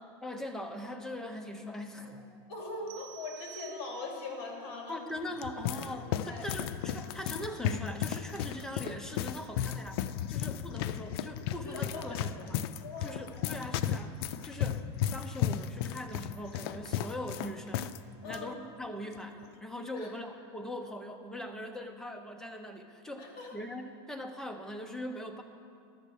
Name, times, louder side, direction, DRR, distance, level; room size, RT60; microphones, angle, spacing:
voice 1, 0.2-2.3 4.9-10.0 10.3-12.6 13.0-14.8 15.1-17.9 18.2-25.4, left 1 dB, 5° left, 5 dB, 0.8 m, -41 dB
voice 2, 2.5-5.1 5.7-5.9 6.2-6.5 10.7-10.8 11.6-12.5 12.8-13.6 18.2-18.5 19.9-20.1 23.2-23.6, left 3 dB, 55° left, -1 dB, 2.8 m, -42 dB
sound 1, 2.9-4.4, right 15 dB, 50° right, 0.7 m, -50 dB
sound 2, 5.1-18.0 18.2-18.4 19.1-19.4, left 10 dB, 70° left, 0.4 m, -35 dB
11.5 x 7.3 x 6.6 m, 2.3 s
supercardioid pair, 140°, 13 cm